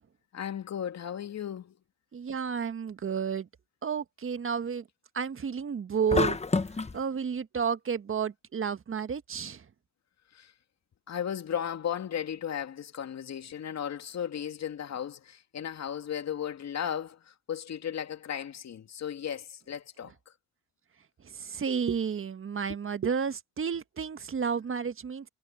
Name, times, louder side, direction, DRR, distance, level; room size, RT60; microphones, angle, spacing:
voice 1, 0.3-1.8 10.3-10.5 11.1-20.3, left 9 dB, 50° left, 2.5 m, -35 dB
voice 2, 2.1-3.5 3.8-4.8 5.1-6.4 6.9-9.6 21.2-25.2, right 6 dB, 35° right, 1.6 m, -31 dB
sound 1, 6.1-7.0, left 4 dB, 20° left, 1.2 m, -27 dB
hypercardioid pair, 60°, 34 cm